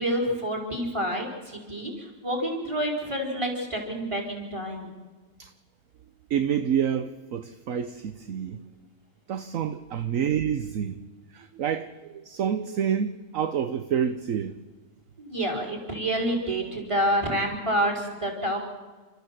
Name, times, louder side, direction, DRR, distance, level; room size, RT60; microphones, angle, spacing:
voice 1, 0.0-4.9 15.2-18.6, equal, 20° right, 4.6 m, -28 dB
voice 2, 6.3-8.6 9.3-11.0 11.3-14.5, right 8 dB, 60° right, 1.2 m, -28 dB
30.0 x 13.5 x 7.6 m
omnidirectional pair, 1.7 m